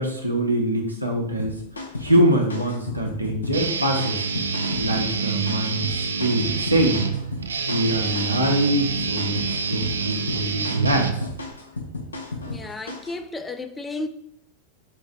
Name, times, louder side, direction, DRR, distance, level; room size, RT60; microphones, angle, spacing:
voice 1, 0.0-1.6 2.0-4.2 4.8-7.0 7.7-11.2, right 1 dB, 90° right, 0.8 m, -24 dB
sound 1, 1.4-13.2, left 2 dB, 75° left, 0.6 m, -34 dB
Guitar, 3.5-11.6, right 5 dB, 70° right, 0.3 m, -27 dB
voice 2, 12.4-14.1, left 2 dB, 10° left, 0.3 m, -33 dB
4.7 x 2.6 x 3.5 m
figure-of-eight pair, 90°, 0 cm